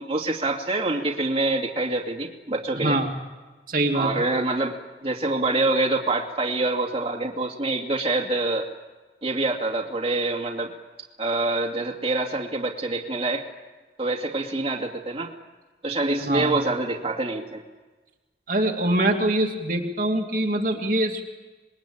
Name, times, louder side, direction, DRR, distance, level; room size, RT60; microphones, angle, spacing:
voice 1, 0.0-3.0 3.9-8.7 9.2-10.7 11.2-13.4 14.0-15.3 15.8-17.6, right 2 dB, 30° right, 0 dB, 2.5 m, -26 dB
voice 2, 2.8-3.2 3.7-4.2 16.2-16.6 18.5-21.2, right 1 dB, 50° right, 1 dB, 2.4 m, -24 dB
26.5 x 21.5 x 8.8 m, 1.3 s
head